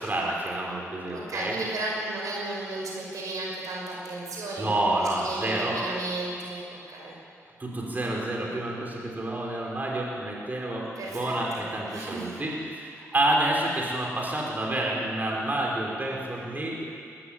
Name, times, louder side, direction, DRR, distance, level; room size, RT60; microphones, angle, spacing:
voice 1, 0.0-1.5 4.6-5.8 7.6-16.8, right 1 dB, 30° right, -2 dB, 5.3 m, -29 dB
voice 2, 1.1-6.6 6.9-7.1 11.0-11.4 11.9-12.4, right 2 dB, 85° right, -2 dB, 5.8 m, -34 dB
21.0 x 14.5 x 9.2 m, 2.3 s
cardioid pair, 75°, 6 cm